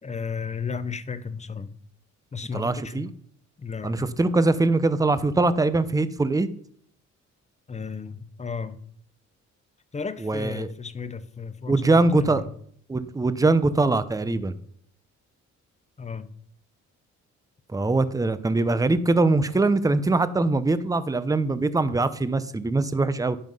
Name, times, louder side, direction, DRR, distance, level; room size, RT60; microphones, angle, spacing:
voice 1, 0.0-1.7 2.3-3.1 3.6-4.2 7.7-8.8 9.9-12.5 16.0-16.3, left 5 dB, 20° left, 13 dB, 0.7 m, -34 dB
voice 2, 2.5-3.1 3.8-6.5 10.2-10.7 11.7-12.4 12.9-14.6 17.7-23.4, right 2 dB, 10° right, 14 dB, 0.7 m, -22 dB
10.5 x 5.7 x 5.5 m, 0.63 s
cardioid pair, 90°, 30 cm